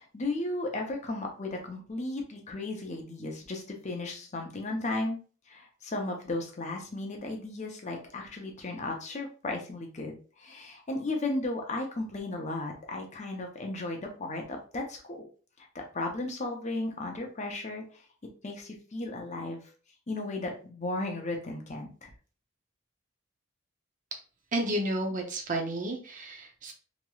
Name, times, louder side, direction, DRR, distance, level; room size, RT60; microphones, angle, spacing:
voice 1, 0.0-5.2 5.5-15.2 15.6-17.8 18.4-19.6 20.1-22.1, left 2 dB, 35° left, 2 dB, 0.6 m, -35 dB
voice 2, 24.5-26.7, right 1 dB, 40° right, 3 dB, 0.6 m, -31 dB
3.0 x 2.9 x 2.3 m, 0.38 s
head